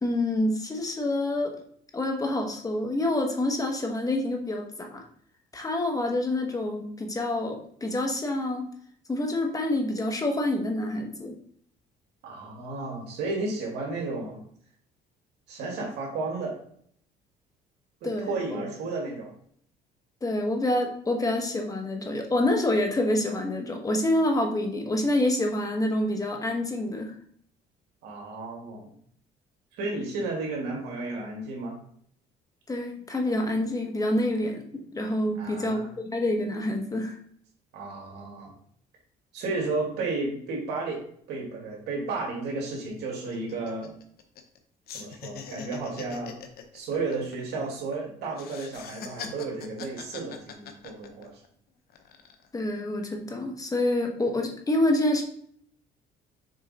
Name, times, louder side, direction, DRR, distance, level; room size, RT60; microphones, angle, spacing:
voice 1, 0.0-1.6 1.9-5.0 5.5-8.7 9.1-11.3 18.0-18.6 20.2-27.1 32.7-37.2 52.5-55.2, left 1 dB, 20° left, 3 dB, 1.1 m, -27 dB
voice 2, 12.2-14.4 15.5-16.6 18.0-19.3 28.0-29.0 29.8-31.8 35.4-35.9 37.7-38.5 39.3-41.0 41.3-43.9 44.9-46.4 46.7-51.4, right 3 dB, 80° right, -1 dB, 2.1 m, -33 dB
sound 1, 42.1-42.2 42.4-42.6 43.0-44.6 44.9-48.0 48.3-51.5 51.9-52.5, left 7 dB, 65° left, 0.9 m, -43 dB
6.4 x 3.6 x 4.1 m, 0.62 s
cardioid pair, 110°, 17 cm